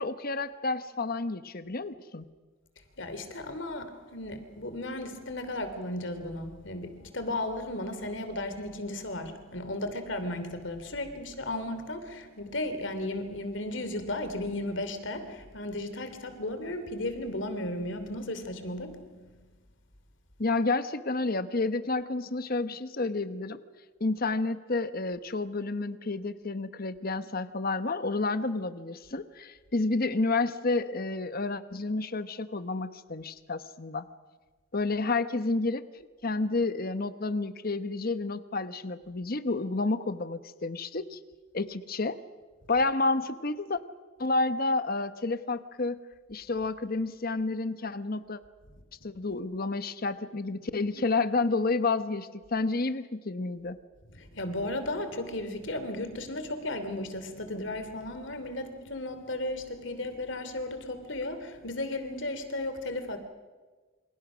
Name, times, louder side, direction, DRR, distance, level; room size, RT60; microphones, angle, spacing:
voice 1, 0.0-2.3 20.4-23.6 24.0-34.1 34.7-35.8 36.2-41.2 41.5-42.2 42.7-43.8 44.2-46.0 46.3-48.4 49.0-53.8, left 3 dB, 45° left, 1.1 m, -30 dB
voice 2, 3.0-19.3 54.1-63.2, left 1 dB, 65° left, 2.9 m, -35 dB
28.0 x 26.5 x 6.3 m
head